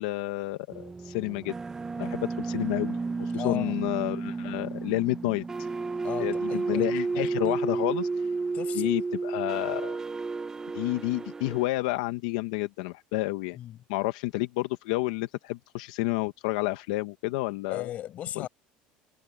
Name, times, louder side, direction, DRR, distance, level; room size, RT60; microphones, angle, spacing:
voice 1, 0.0-1.5 2.0-5.4 6.2-8.1 8.7-10.0 10.7-13.6 13.9-17.9 18.4-18.5, left 20 dB, 90° left, 1.1 m, -30 dB
sound 1, 0.7-11.7, right 4 dB, 15° right, 0.7 m, -32 dB
voice 2, 3.3-3.8 6.0-7.9 8.5-8.9 13.6-13.8 17.7-18.5, left 12 dB, 45° left, 7.6 m, -37 dB
supercardioid pair, 125°, 3 cm